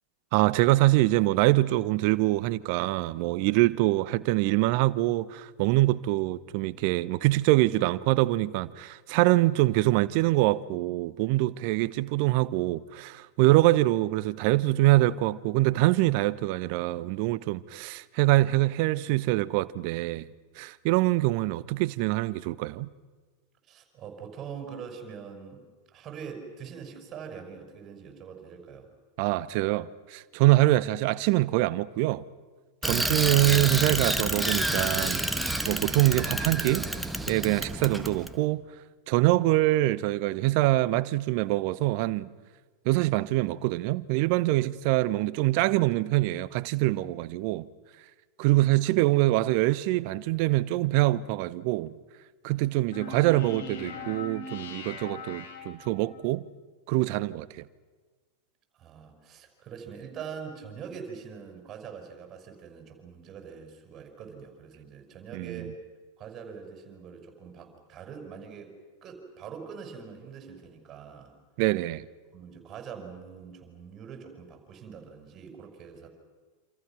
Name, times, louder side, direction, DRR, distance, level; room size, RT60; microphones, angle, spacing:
voice 1, 0.3-20.3 20.6-22.9 29.2-32.2 32.8-35.2 35.7-36.9 37.3-38.6 39.1-42.3 42.8-47.7 48.4-51.9 52.4-56.4 56.9-57.5 65.3-65.6 71.6-72.0, right 18 dB, 50° right, 0.8 m, -24 dB
voice 2, 23.7-28.9 58.7-65.7 66.2-71.3 72.3-76.1, right 6 dB, 30° right, 6.0 m, -43 dB
Bicycle, 32.8-38.3, right 1 dB, 5° right, 1.7 m, -29 dB
sound 1, 52.9-56.2, left 4 dB, 60° left, 3.9 m, -40 dB
28.0 x 27.0 x 6.2 m
figure-of-eight pair, 90°, 0 cm